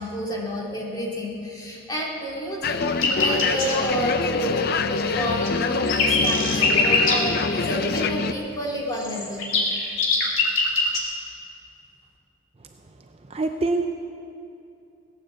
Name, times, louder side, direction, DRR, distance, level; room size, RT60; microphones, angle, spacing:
voice 1, 0.0-9.5, equal, 20° left, -4 dB, 2.6 m, -30 dB
sound 1, 2.6-8.3, left 4 dB, 45° left, 0.5 m, -25 dB
sound 2, 2.9-3.7 5.0-7.2 9.0-11.0, left 4 dB, 65° left, 2.4 m, -22 dB
voice 2, 13.3-13.9, right 3 dB, 30° right, 5 dB, 0.5 m, -24 dB
17.5 x 9.4 x 7.4 m, 2.6 s
head